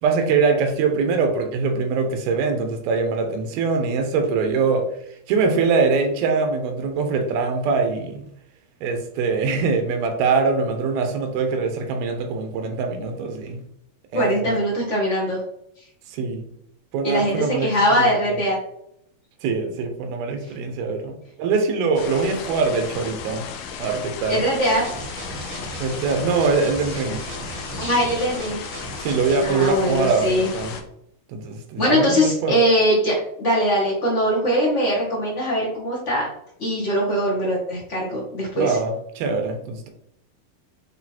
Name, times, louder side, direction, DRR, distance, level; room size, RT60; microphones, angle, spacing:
voice 1, 0.0-4.8 5.3-8.2 8.8-13.6 14.1-14.5 16.1-16.5 16.9-18.1 19.4-23.5 23.8-24.4 25.8-27.3 29.0-30.8 31.3-32.6 38.6-39.9, right 4 dB, 80° right, 5 dB, 2.8 m, -23 dB
voice 2, 14.1-15.4 17.0-18.6 24.3-24.8 27.8-28.6 29.4-30.5 31.8-36.3 36.6-38.8, equal, 35° left, -4 dB, 1.2 m, -21 dB
sound 1, 22.0-30.8, left 7 dB, 80° left, 2.6 m, -35 dB
sound 2, 24.6-29.9, right 3 dB, 50° right, 1.6 m, -37 dB
8.5 x 3.8 x 4.3 m, 0.75 s
omnidirectional pair, 4.3 m